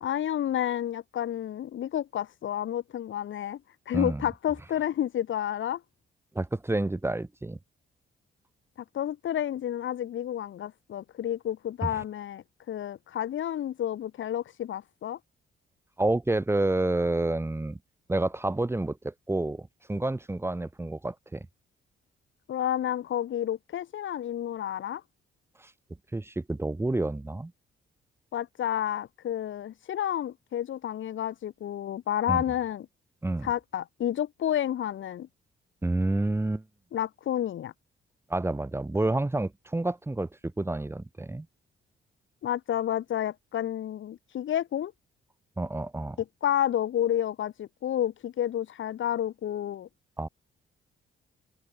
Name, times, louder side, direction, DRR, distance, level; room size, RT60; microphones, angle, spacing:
voice 1, 0.0-3.6 3.9-5.8 8.8-15.2 22.5-25.0 28.3-32.9 33.4-35.3 36.9-37.7 42.4-44.9 46.4-49.9, left 10 dB, 65° left, 1.6 m, -30 dB
voice 2, 3.9-4.2 6.3-7.6 11.8-11.9 16.0-17.8 18.1-21.5 25.6-25.7 26.1-27.5 32.3-32.4 33.2-33.5 35.8-36.6 38.3-41.5 45.6-46.2 50.2-50.3, right 2 dB, 10° right, 1.6 m, -29 dB
open air
cardioid pair, 130°, 21 cm